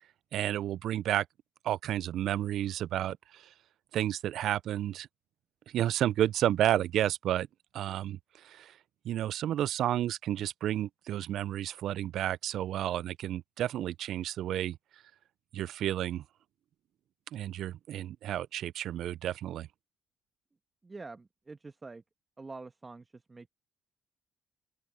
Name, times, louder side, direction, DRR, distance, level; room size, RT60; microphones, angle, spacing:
voice 1, 0.3-1.3 1.6-3.5 3.9-5.1 5.7-7.5 7.7-8.8 9.0-14.8 15.5-16.2 17.3-19.7, right 12 dB, 75° right, 0.3 m, -31 dB
voice 2, 20.8-22.0 22.4-23.5, right 3 dB, 25° right, 1.1 m, -46 dB
open air
cardioid pair, 90°, 0 cm